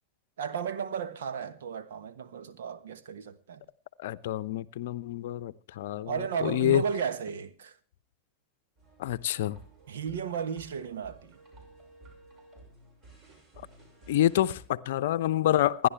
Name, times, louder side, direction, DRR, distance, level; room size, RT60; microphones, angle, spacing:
voice 1, 0.4-3.6 6.1-7.7 9.9-11.4, right 7 dB, 60° right, 1.3 m, -34 dB
voice 2, 4.0-6.8 9.0-9.6 14.1-15.9, left 12 dB, 55° left, 0.7 m, -27 dB
sound 1, 8.8-14.6, right 2 dB, 35° right, 6.7 m, -54 dB
27.5 x 11.0 x 3.3 m
figure-of-eight pair, 90°, 0 cm